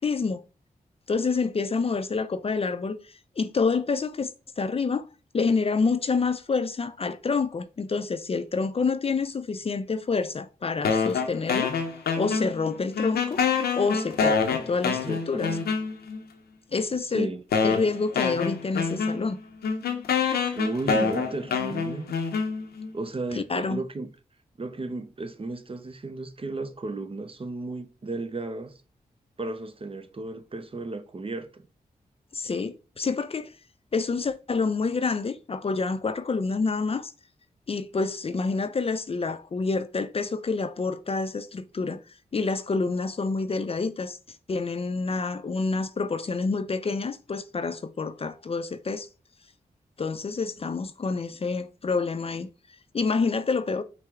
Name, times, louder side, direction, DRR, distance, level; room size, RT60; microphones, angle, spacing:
voice 1, 0.0-0.4 1.1-3.0 3.4-4.3 4.6-5.1 5.3-11.7 12.2-13.4 13.8-15.0 15.3-15.5 16.7-17.3 17.6-19.4 23.4-23.8 32.3-33.5 33.9-37.1 37.7-42.0 42.3-44.2 44.5-49.1 50.0-52.5 52.9-53.8, left 4 dB, 40° left, 0.4 m, -27 dB
sound 1, 10.8-12.7 13.0-16.2 16.9-17.0 17.5-22.9, left 5 dB, 85° left, 0.6 m, -26 dB
voice 2, 14.9-15.6 17.0-17.4 20.5-22.1 22.9-24.1 24.6-28.7 29.4-31.6, right 2 dB, 35° right, 0.6 m, -34 dB
5.4 x 2.0 x 3.5 m
supercardioid pair, 40°, 16 cm